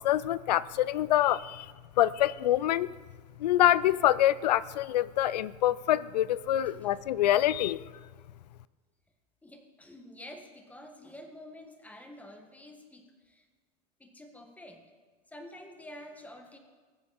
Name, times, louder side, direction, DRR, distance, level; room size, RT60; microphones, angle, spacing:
voice 1, 0.0-1.7 2.0-2.9 3.4-7.8, left 13 dB, 85° left, 19 dB, 0.4 m, -25 dB
voice 2, 9.4-13.5 14.0-14.8 15.3-16.6, left 1 dB, 5° left, 5 dB, 1.6 m, -49 dB
20.0 x 7.7 x 4.2 m, 1.4 s
hypercardioid pair, 105°, 20 cm